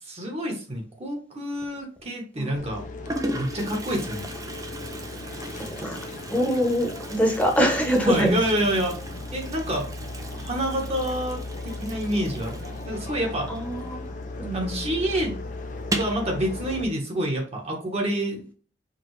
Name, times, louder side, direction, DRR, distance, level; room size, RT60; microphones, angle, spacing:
voice 1, 0.0-2.8 3.3-4.2 8.1-9.0 9.3-9.9 10.4-13.5 14.5-15.4 15.9-18.5, right 1 dB, 35° right, 0 dB, 1.2 m, -28 dB
Toilet flush, 1.5-2.0 2.7-2.8 3.0-14.3 14.6-14.7 15.0-15.1 15.8-16.3, right 1 dB, 20° right, 0.5 m, -37 dB
sound 1, 2.6-16.8, left 2 dB, 45° left, 0.6 m, -37 dB
voice 2, 5.2-6.0 6.3-8.4 13.5-14.1 14.4-14.9, equal, 5° left, 1 dB, 1.0 m, -24 dB
5.1 x 2.4 x 3.2 m, 0.40 s
head